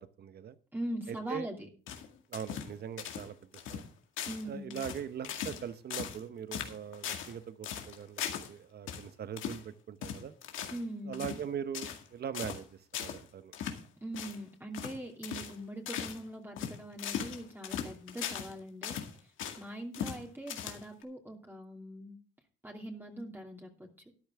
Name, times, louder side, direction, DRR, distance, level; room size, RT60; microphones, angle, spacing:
voice 1, 0.0-0.6 1.1-1.5 2.3-3.4 3.7-3.8 4.5-8.2 8.5-10.3 11.1-12.7 13.0-13.5, right 8 dB, 55° right, 13 dB, 1.0 m, -41 dB
voice 2, 0.7-1.7 4.3-4.8 10.7-11.3 14.0-22.2 22.6-23.9, right 1 dB, 10° right, 0 dB, 2.7 m, -42 dB
sound 1, 1.9-3.3 3.5-3.9 4.2-4.5 4.7-5.6 5.9-6.2 6.5-7.3 7.6-8.5 8.9-9.0 9.4-9.6 10.0-10.8 11.1-11.4 11.7-12.1 12.3-12.6 12.9-13.2 13.5-13.8 14.1-14.4 14.7-15.0 15.2-15.6 15.9-16.2 16.6-18.5 18.8-19.6 19.9-20.2 20.5-21.0, left 8 dB, 85° left, 2.0 m, -39 dB
13.5 x 10.5 x 3.6 m, 0.38 s
cardioid pair, 90°, 20 cm